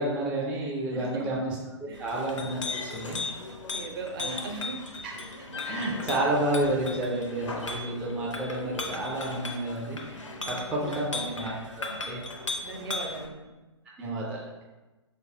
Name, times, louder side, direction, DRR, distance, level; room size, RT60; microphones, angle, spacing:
voice 1, 0.0-3.2 4.2-4.4 5.6-12.2 14.0-14.4, right 1 dB, 5° right, -5 dB, 0.3 m, -30 dB
voice 2, 0.6-1.4 1.9-2.1 3.7-4.8 10.4-11.3 12.6-13.5, right 4 dB, 50° right, 2 dB, 0.6 m, -39 dB
Chink clink, 1.9-13.3, left 3 dB, 80° left, 0.6 m, -37 dB
4.2 x 3.3 x 2.7 m, 1.2 s
figure-of-eight pair, 120°, 16 cm